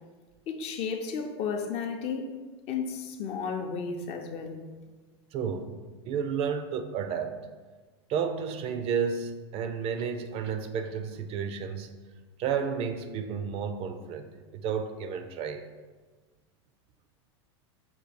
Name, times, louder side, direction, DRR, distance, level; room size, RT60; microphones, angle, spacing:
voice 1, 0.5-2.3 2.7-4.6, left 5 dB, 45° left, 0.6 m, -33 dB
voice 2, 5.3-5.8 6.1-7.4 8.1-11.9 12.4-15.7, right 6 dB, 45° right, 0.4 m, -32 dB
5.4 x 2.3 x 4.1 m
hypercardioid pair, 110°, 14 cm